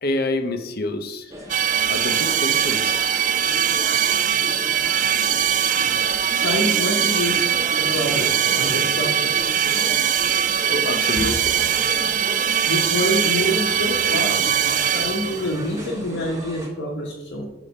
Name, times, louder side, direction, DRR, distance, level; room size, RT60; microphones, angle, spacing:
voice 1, 0.0-1.3 1.9-3.1 10.7-11.6 17.0-17.1, left 2 dB, 50° left, 7 dB, 0.7 m, -27 dB
sound 1, 1.3-16.7, left 1 dB, 15° right, 1.1 m, -35 dB
sound 2, 1.5-15.6, right 9 dB, 40° right, 0.4 m, -21 dB
voice 2, 4.5-5.4 6.3-9.4 12.3-14.5 14.7-17.5, left 1 dB, 80° left, -3 dB, 1.2 m, -27 dB
6.1 x 5.0 x 5.4 m, 0.94 s
head